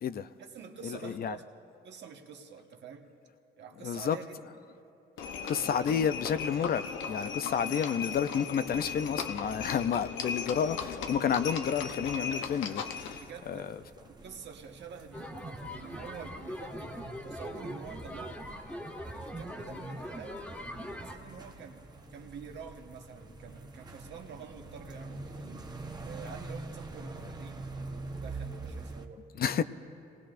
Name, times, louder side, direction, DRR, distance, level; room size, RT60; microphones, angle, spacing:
voice 1, 0.4-3.1 3.6-4.4 13.2-13.7 14.1-15.4 15.7-18.6 19.1-20.5 21.0-25.7 26.0-29.3, right 6 dB, 65° right, 1.4 m, -47 dB
voice 2, 1.0-1.4 3.8-4.2 5.4-13.8 29.4-29.6, left 7 dB, 50° left, 0.5 m, -30 dB
Livestock farm animals working animals, 5.2-13.3, left 6 dB, 80° left, 0.8 m, -37 dB
sound 1, 11.8-29.1, right 3 dB, 20° right, 1.0 m, -46 dB
sound 2, 15.1-21.2, equal, 5° left, 1.6 m, -41 dB
28.0 x 19.5 x 2.5 m
cardioid pair, 90°, 20 cm